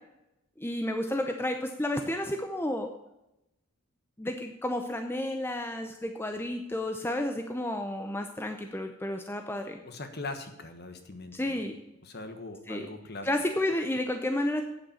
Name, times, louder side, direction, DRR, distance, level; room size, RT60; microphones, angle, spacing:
voice 1, 0.6-2.9 4.2-9.8 11.3-11.8 12.7-12.9 13.2-14.6, left 1 dB, 10° left, 5 dB, 0.6 m, -31 dB
voice 2, 9.9-11.7 12.0-13.3, left 3 dB, 45° left, 7 dB, 1.3 m, -41 dB
8.8 x 7.9 x 7.1 m, 0.90 s
head